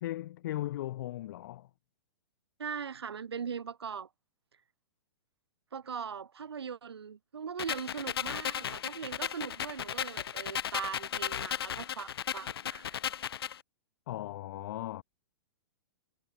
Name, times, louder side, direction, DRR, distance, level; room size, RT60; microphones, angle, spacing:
voice 1, 0.0-1.7 14.1-15.0, left 14 dB, 55° left, 1.0 m, -37 dB
voice 2, 2.6-4.1 5.7-12.9, right 7 dB, 80° right, 0.6 m, -40 dB
sound 1, 7.6-13.6, left 9 dB, 70° left, 0.4 m, -36 dB
figure-of-eight pair, 110°, 13 cm